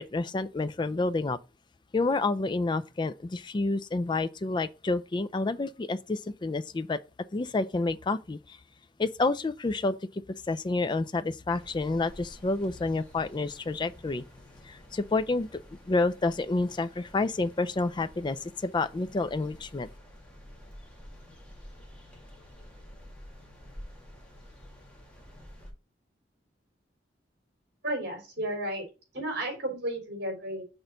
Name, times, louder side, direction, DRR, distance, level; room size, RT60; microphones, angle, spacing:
voice 1, 0.0-1.4 1.9-7.0 7.3-8.6 9.0-10.2 10.5-14.2 14.6-15.5 15.9-19.9, left 3 dB, 25° left, 0.4 m, -29 dB
sound 1, 11.5-25.7, equal, 5° left, 1.7 m, -50 dB
voice 2, 27.8-28.8 29.1-30.6, right 1 dB, 60° right, 3.9 m, -33 dB
6.2 x 3.8 x 5.4 m
head